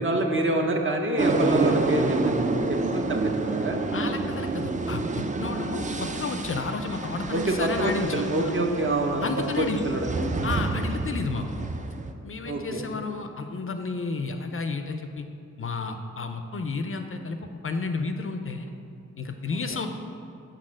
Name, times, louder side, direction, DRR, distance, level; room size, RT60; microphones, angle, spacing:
voice 1, 0.0-2.3 2.7-3.8 7.3-9.3 9.6-10.1 12.4-12.8, right 1 dB, 40° right, 2 dB, 0.8 m, -26 dB
sound 1, 1.2-12.1, right 3 dB, 25° right, 0.4 m, -28 dB
voice 2, 3.9-8.2 9.2-9.8 10.4-11.6 12.2-15.3 15.6-17.4 17.6-18.7 19.2-19.9, left 4 dB, 45° left, 6 dB, 0.4 m, -31 dB
6.4 x 4.0 x 6.2 m, 2.6 s
wide cardioid pair, 95°, 31 cm